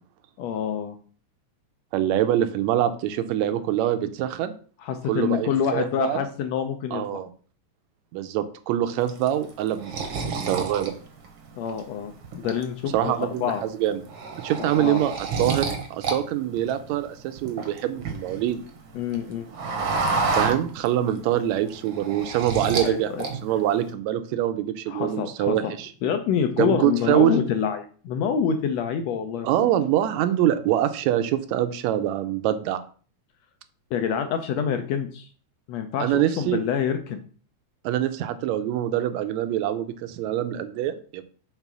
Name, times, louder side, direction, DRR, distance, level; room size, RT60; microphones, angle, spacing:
voice 1, 0.4-0.9 4.8-7.2 11.6-13.6 14.8-15.1 18.9-19.5 22.8-23.2 24.9-25.7 26.0-29.7 33.9-35.3 35.7-37.2, left 7 dB, 80° left, 6 dB, 1.5 m, -27 dB
voice 2, 1.9-4.5 5.1-6.2 6.9-7.3 8.1-9.9 10.2-10.9 12.9-14.0 14.4-15.1 15.4-18.6 20.4-25.9 26.6-27.4 29.4-32.8 36.0-36.6 37.8-41.2, right 12 dB, 80° right, 10 dB, 1.7 m, -24 dB
sound 1, 9.1-11.8 12.2-13.0 13.4-13.6 13.9-16.2 16.4-18.5 18.9-21.2 21.5-22.9 23.2-23.8, right 4 dB, 65° right, 1.3 m, -29 dB
5.5 x 3.8 x 6.0 m, 0.42 s
omnidirectional pair, 3.5 m